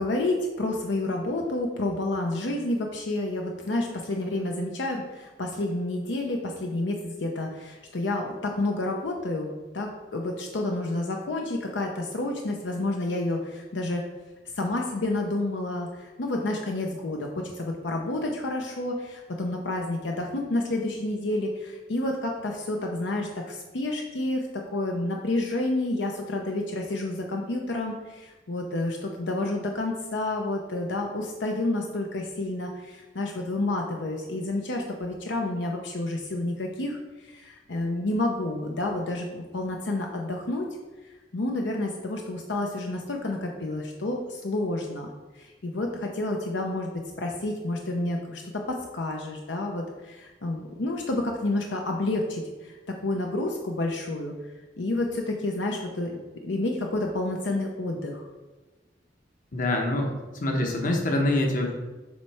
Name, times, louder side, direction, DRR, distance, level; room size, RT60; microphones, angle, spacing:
voice 1, 0.0-14.1 14.6-37.0 37.2-40.7 41.3-45.1 45.4-46.9 47.2-54.3 54.8-56.1 56.4-58.2, left 2 dB, 75° left, 1 dB, 0.7 m, -29 dB
voice 2, 59.5-61.7, left 1 dB, 45° left, 1 dB, 1.0 m, -25 dB
7.2 x 3.2 x 4.7 m, 1.2 s
head